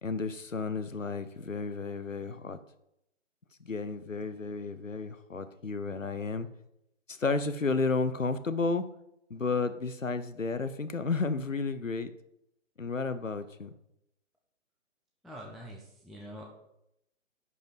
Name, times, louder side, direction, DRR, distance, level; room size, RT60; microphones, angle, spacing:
voice 1, 0.0-2.6 3.6-6.5 7.1-8.9 9.3-12.1 12.8-13.7, left 4 dB, 90° left, 12 dB, 0.8 m, -32 dB
voice 2, 15.2-16.4, equal, ahead, -2 dB, 0.3 m, -45 dB
11.0 x 5.0 x 4.1 m, 0.83 s
figure-of-eight pair, 135°, 38 cm